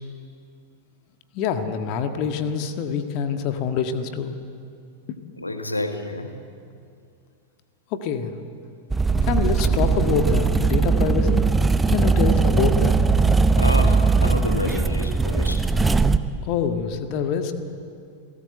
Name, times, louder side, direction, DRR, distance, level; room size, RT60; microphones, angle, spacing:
voice 1, 1.3-4.4 7.9-8.3 9.3-11.4 11.9-13.0 16.5-17.5, left 6 dB, 45° left, 7 dB, 1.7 m, -25 dB
voice 2, 5.4-6.4 13.6-15.7, left 2 dB, 85° left, 7 dB, 1.6 m, -29 dB
sound 1, 8.9-16.2, right 4 dB, 10° right, 0.8 m, -19 dB
29.0 x 18.0 x 7.9 m, 2.3 s
figure-of-eight pair, 90°, 0 cm